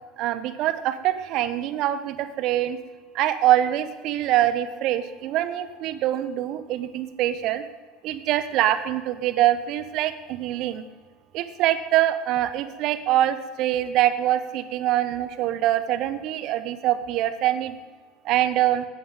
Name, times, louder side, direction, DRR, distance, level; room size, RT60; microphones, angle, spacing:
voice 1, 0.2-2.8 3.1-7.7 8.0-10.8 11.3-17.8 18.2-18.9, right 13 dB, 50° right, 12 dB, 0.8 m, -24 dB
15.5 x 10.5 x 3.7 m, 1.4 s
figure-of-eight pair, 70°, 0 cm